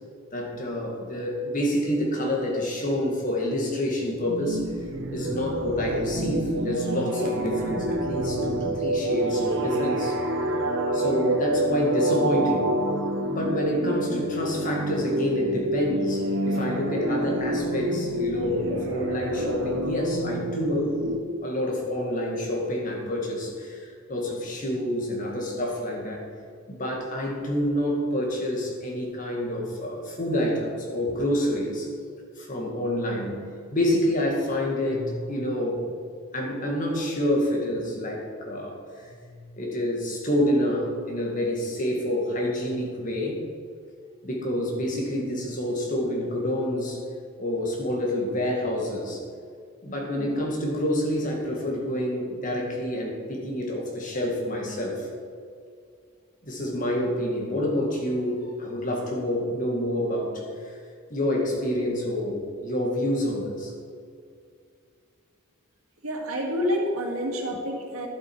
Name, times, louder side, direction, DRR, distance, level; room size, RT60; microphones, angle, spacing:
voice 1, 0.3-4.6 5.1-10.2 10.9-12.7 13.3-21.0 21.4-26.2 26.7-31.9 32.4-33.4 33.7-35.9 36.3-43.4 44.2-47.0 47.4-49.2 49.8-55.1 56.4-60.8 61.1-63.7, left 1 dB, 40° left, -1 dB, 1.9 m, -28 dB
sound 1, 4.2-21.2, right 1 dB, 60° right, 1.0 m, -28 dB
voice 2, 50.1-50.5 66.0-68.1, equal, 85° right, 0 dB, 2.1 m, -28 dB
11.5 x 7.9 x 4.7 m, 2.2 s
head